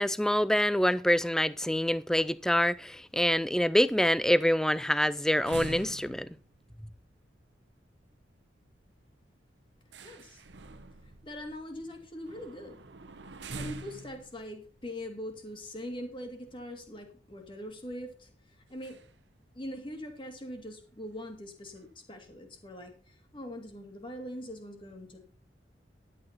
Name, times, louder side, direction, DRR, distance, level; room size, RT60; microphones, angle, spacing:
voice 1, 0.0-6.3, equal, 5° left, 0.4 m, -26 dB
sound 1, 5.4-16.7 17.1-17.2 17.5-17.7 18.7-19.3 19.5-19.6 20.0-20.1 20.7-20.8 21.1-21.4 21.8-22.5, right 3 dB, 90° right, 1.0 m, -46 dB
voice 2, 10.0-10.4 11.0-12.8 13.5-18.3 18.7-19.0 19.5-25.2, left 1 dB, 30° left, 2.4 m, -42 dB
11.5 x 8.6 x 4.4 m
head